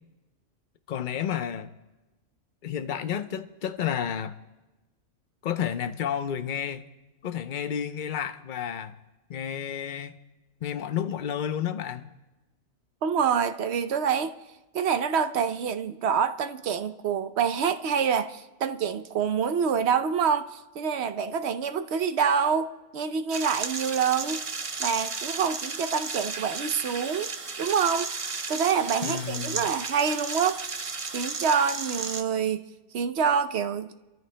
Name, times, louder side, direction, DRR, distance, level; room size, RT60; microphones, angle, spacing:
voice 1, 0.9-1.7 2.6-4.3 5.4-6.9 7.2-9.0 9.3-10.2 10.6-12.1 29.0-29.7, left 9 dB, 50° left, 0.8 m, -31 dB
voice 2, 13.0-14.3 14.7-24.4 24.8-27.3 27.6-28.1 28.5-30.6 31.1-32.6 32.9-33.9, right 7 dB, 65° right, 0.9 m, -26 dB
sound 1, 23.3-32.2, right 4 dB, 35° right, 0.6 m, -34 dB
29.5 x 13.5 x 2.2 m
omnidirectional pair, 1.2 m